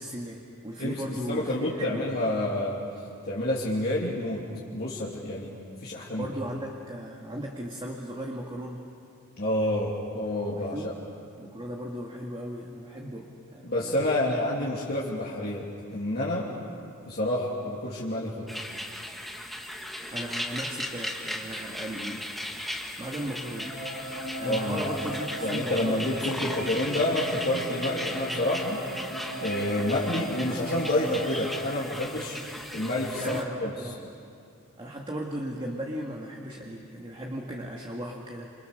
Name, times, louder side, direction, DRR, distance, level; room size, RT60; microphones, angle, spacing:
voice 1, 0.0-2.1 6.2-8.9 10.6-11.0 11.4-13.9 20.1-22.7 23.0-23.8 24.4-26.6 33.2-34.0 34.8-38.5, right 1 dB, 25° right, -1 dB, 2.0 m, -37 dB
voice 2, 1.3-2.8 3.3-4.4 4.7-5.5 5.8-6.3 9.4-10.9 13.6-16.5 17.1-18.5 24.4-25.0 25.4-28.8 29.4-32.4 32.7-33.7, left 1 dB, 45° left, -6 dB, 2.9 m, -28 dB
sound 1, 18.5-33.4, left 1 dB, ahead, 1.9 m, -37 dB
sound 2, 23.6-31.6, equal, 45° right, 6.6 m, -37 dB
28.5 x 28.0 x 6.7 m, 2.4 s
head